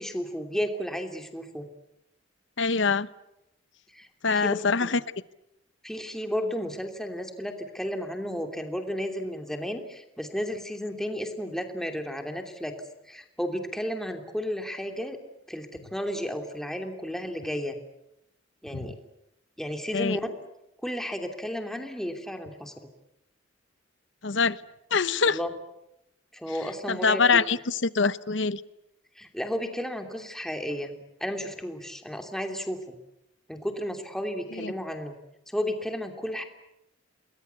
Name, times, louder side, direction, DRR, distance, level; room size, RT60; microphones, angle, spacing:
voice 1, 0.0-1.7 3.9-4.1 4.3-4.6 4.8-5.0 5.8-12.8 13.1-15.2 15.5-17.8 18.6-18.9 19.6-20.3 20.8-22.7 25.3-25.5 26.3-27.4 29.2-33.0 33.5-35.2 35.5-36.4, equal, ahead, 2.9 m, -33 dB
voice 2, 2.6-3.1 4.2-5.0 19.9-20.2 24.2-24.6 24.9-25.4 26.9-28.6, left 5 dB, 75° left, 0.9 m, -24 dB
29.0 x 21.0 x 8.3 m
head